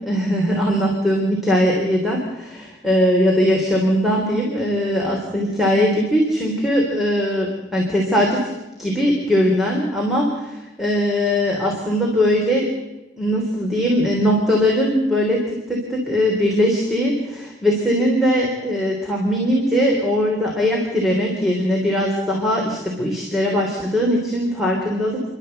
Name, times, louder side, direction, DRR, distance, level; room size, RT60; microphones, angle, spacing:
voice 1, 0.0-8.5 8.8-12.7 13.2-25.3, equal, ahead, -2 dB, 3.5 m, -20 dB
30.0 x 12.0 x 7.9 m, 1.0 s
head